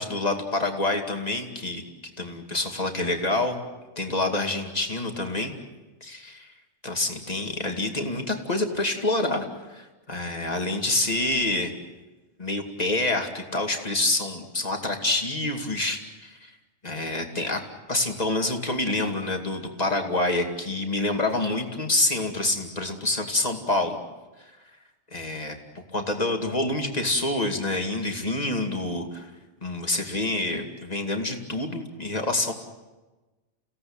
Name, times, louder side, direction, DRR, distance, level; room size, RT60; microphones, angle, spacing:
voice 1, 0.0-1.8 2.2-3.6 4.0-5.5 6.0-6.5 6.8-11.7 12.4-16.5 16.8-17.6 17.9-24.0 25.1-29.3 29.6-32.5, left 2 dB, 35° left, 3 dB, 2.6 m, -27 dB
29.5 x 17.5 x 8.8 m, 1.2 s
omnidirectional pair, 1.2 m